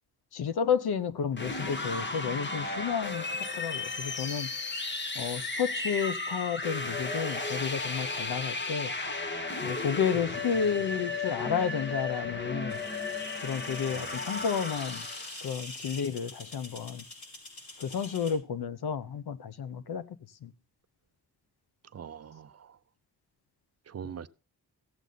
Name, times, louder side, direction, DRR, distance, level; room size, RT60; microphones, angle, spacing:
voice 1, 0.3-3.2 3.6-4.5 5.2-8.9 9.6-12.8 13.4-15.0 15.4-17.0 17.8-20.0 20.4-20.5, left 7 dB, 70° left, 1.0 m, -31 dB
sound 1, 1.3-15.5, left 3 dB, 30° left, 1.2 m, -34 dB
sound 2, 12.7-18.3, left 2 dB, 45° left, 5.9 m, -44 dB
voice 2, 13.9-14.3 21.9-22.8 23.9-24.3, right 8 dB, 40° right, 0.5 m, -43 dB
15.5 x 8.1 x 4.0 m
cardioid pair, 100°, 39 cm